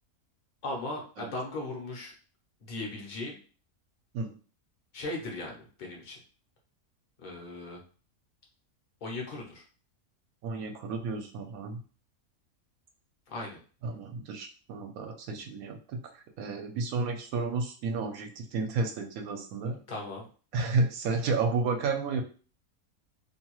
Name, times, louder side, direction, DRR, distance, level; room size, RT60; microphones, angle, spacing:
voice 1, 0.6-2.1 2.6-3.4 4.9-6.2 7.2-7.8 9.0-9.6 13.3-13.6 19.7-20.3, left 2 dB, 45° left, -1 dB, 0.7 m, -37 dB
voice 2, 10.4-11.8 13.8-16.0 16.4-19.8 20.5-22.2, right 3 dB, 80° right, 5 dB, 1.0 m, -31 dB
2.6 x 2.3 x 2.9 m, 0.39 s
omnidirectional pair, 1.5 m